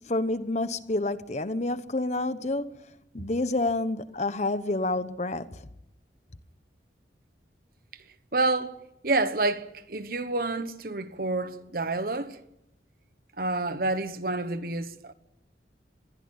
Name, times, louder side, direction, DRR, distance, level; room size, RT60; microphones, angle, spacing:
voice 1, 0.0-2.9 3.1-5.7, left 2 dB, 40° left, 1.0 m, -29 dB
voice 2, 8.3-8.7 9.0-12.4 13.4-15.1, right 2 dB, 55° right, 1.3 m, -28 dB
21.5 x 15.5 x 8.9 m
head